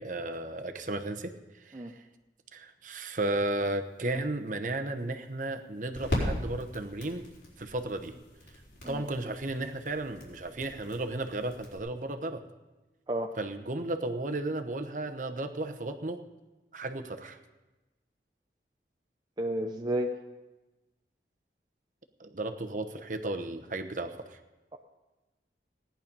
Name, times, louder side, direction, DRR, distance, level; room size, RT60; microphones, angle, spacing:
voice 1, 0.0-2.0 2.5-7.3 7.6-8.2 8.9-12.4 13.4-16.2 16.7-17.4 22.2-24.4, right 2 dB, 45° right, 6 dB, 1.0 m, -34 dB
sound 1, 3.9-11.8, left 1 dB, 85° left, 4.2 m, -39 dB
voice 2, 19.4-20.1 24.7-24.8, right 1 dB, 25° right, 2 dB, 0.6 m, -31 dB
17.5 x 10.5 x 5.4 m, 1.1 s
head